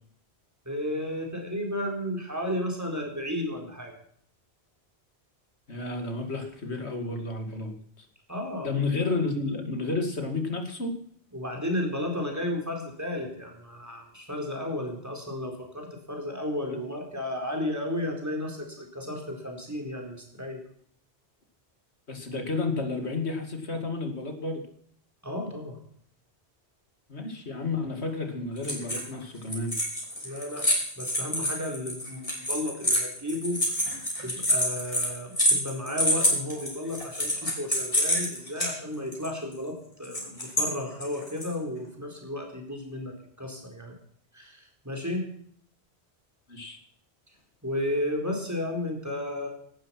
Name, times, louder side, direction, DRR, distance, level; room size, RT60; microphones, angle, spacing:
voice 1, 0.7-3.9 8.3-8.7 11.3-20.6 25.2-25.8 30.2-30.7 31.0-33.6 34.2-43.9 44.3-45.2 47.6-49.5, left 1 dB, 15° right, 2 dB, 4.2 m, -33 dB
voice 2, 5.7-8.1 8.6-10.9 22.1-24.6 27.1-29.8 46.5-46.8, left 3 dB, 85° left, 5 dB, 2.8 m, -31 dB
sound 1, 28.6-29.1 29.4-38.7 39.1-39.3 40.0-40.6 41.0-41.5, equal, 30° left, 5.1 m, -27 dB
17.5 x 12.0 x 5.9 m, 0.63 s
omnidirectional pair, 1.1 m